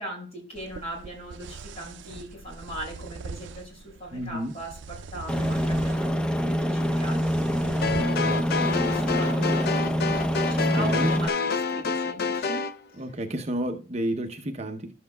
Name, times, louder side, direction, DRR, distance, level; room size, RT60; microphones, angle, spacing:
voice 1, 0.0-6.1 6.4-8.2 8.8-9.6 10.4-12.6, right 1 dB, 35° left, 4.9 m, -39 dB
sound 1, 0.5-8.0, right 4 dB, 75° right, 0.4 m, -42 dB
voice 2, 4.1-4.5 8.2-8.7 10.6-11.1 13.0-14.9, right 1 dB, 35° right, 0.7 m, -31 dB
Aircraft, 5.3-11.3, equal, 5° left, 0.5 m, -25 dB
sound 2, 7.8-12.7, left 4 dB, 55° left, 0.5 m, -28 dB
13.0 x 7.4 x 2.2 m
head